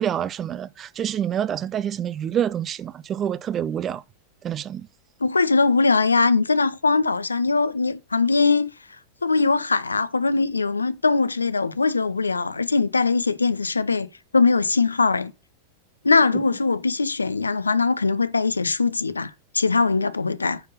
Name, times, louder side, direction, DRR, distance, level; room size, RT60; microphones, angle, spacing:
voice 1, 0.0-4.0 4.4-4.9, right 9 dB, 25° right, 0.5 m, -27 dB
voice 2, 5.2-8.7 9.2-15.3 16.0-20.6, left 4 dB, 80° left, 0.7 m, -21 dB
9.1 x 5.4 x 5.5 m
figure-of-eight pair, 90°, 0 cm